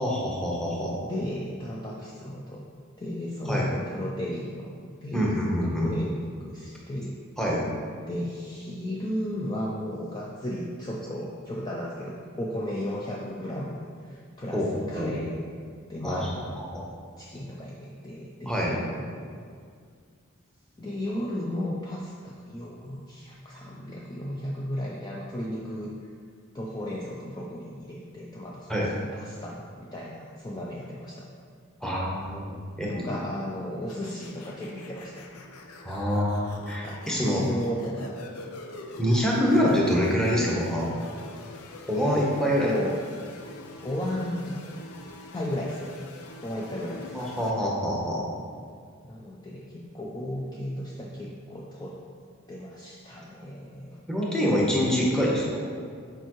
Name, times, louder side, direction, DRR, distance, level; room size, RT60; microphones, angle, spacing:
voice 1, 0.0-1.0 3.4-3.7 5.1-5.9 7.4-7.6 14.5-15.2 16.0-16.9 18.5-18.7 28.7-28.9 31.8-32.4 32.8-33.2 35.8-37.4 39.0-40.9 41.9-42.7 47.1-48.2 54.1-55.7, equal, 5° left, -4 dB, 0.9 m, -26 dB
voice 2, 1.0-2.6 3.0-5.3 5.6-7.2 8.1-15.4 15.9-16.6 17.2-19.2 20.8-25.9 26.5-31.3 32.9-35.3 36.8-38.4 39.4-39.5 41.9-42.3 42.6-43.0 43.8-44.6 45.3-46.0 46.4-47.2 49.0-52.0 52.5-54.0, equal, 20° left, -4 dB, 0.4 m, -34 dB
sound 1, 33.9-47.5, left 2 dB, 90° left, 0.5 m, -44 dB
6.8 x 4.5 x 3.1 m, 2.1 s
head